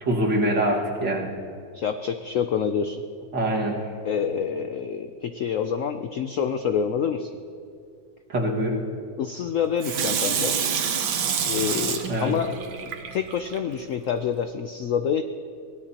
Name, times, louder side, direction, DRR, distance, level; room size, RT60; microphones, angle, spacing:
voice 1, 0.0-1.3 3.3-3.8 8.3-8.8 12.1-12.4, right 1 dB, 65° right, -2 dB, 2.6 m, -24 dB
voice 2, 1.7-3.0 4.0-7.3 9.2-10.6 11.4-12.5 13.1-15.2, left 7 dB, 90° left, 8 dB, 0.7 m, -27 dB
Water tap faucet / Sink (filling or washing), 9.8-13.6 14.1-14.2, right 7 dB, 85° right, 1.7 m, -27 dB
23.0 x 17.5 x 2.9 m, 2.3 s
omnidirectional pair, 2.1 m